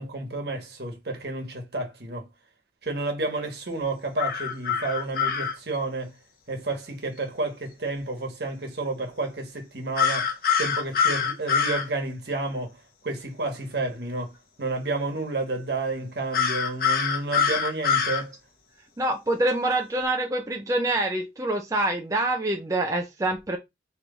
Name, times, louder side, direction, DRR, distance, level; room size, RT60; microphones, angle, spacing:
voice 1, 0.0-2.2 2.8-6.1 6.5-10.3 10.6-12.7 13.0-14.3 14.6-18.3, right 2 dB, 60° right, 1.3 m, -30 dB
sound 1, 4.2-5.5 10.0-11.9 16.3-18.2, left 6 dB, 50° left, 0.7 m, -24 dB
voice 2, 19.0-23.6, right 2 dB, 20° right, 0.4 m, -26 dB
3.4 x 3.1 x 3.9 m
head